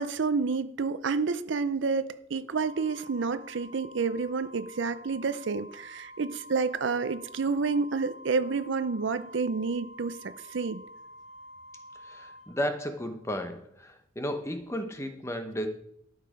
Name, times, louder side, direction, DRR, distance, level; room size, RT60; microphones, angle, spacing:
voice 1, 0.0-10.8, right 4 dB, 65° right, 14 dB, 0.5 m, -29 dB
Organ, 2.5-13.2, equal, 70° left, 2.4 m, -49 dB
voice 2, 12.0-15.7, equal, 15° left, 7 dB, 0.9 m, -34 dB
12.5 x 6.5 x 5.0 m, 0.72 s
head